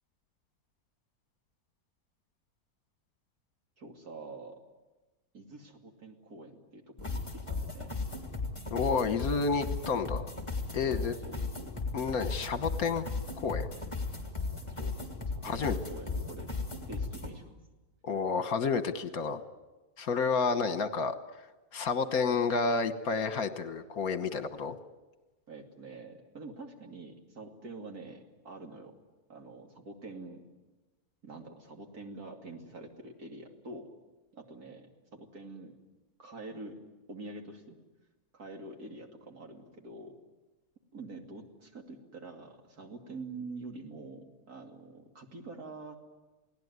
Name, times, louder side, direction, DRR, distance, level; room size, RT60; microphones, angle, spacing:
voice 1, 3.8-4.6 5.3-7.9 10.9-11.8 14.6-15.0 15.4-16.5 16.9-17.4 20.5-20.7 25.5-29.0 29.3-30.4 31.2-33.9 34.3-35.7 36.2-36.8 37.1-37.8 38.3-40.1 40.9-46.0, right 2 dB, 75° right, 3 dB, 3.1 m, -46 dB
sound 1, 7.0-17.3, left 3 dB, 20° left, 3.2 m, -36 dB
voice 2, 8.7-10.3 10.7-11.1 11.9-13.1 13.4-13.7 15.4-15.7 18.0-19.4 20.0-24.8, left 5 dB, 70° left, 10 dB, 1.6 m, -30 dB
28.5 x 18.0 x 9.5 m, 1.1 s
omnidirectional pair, 1.6 m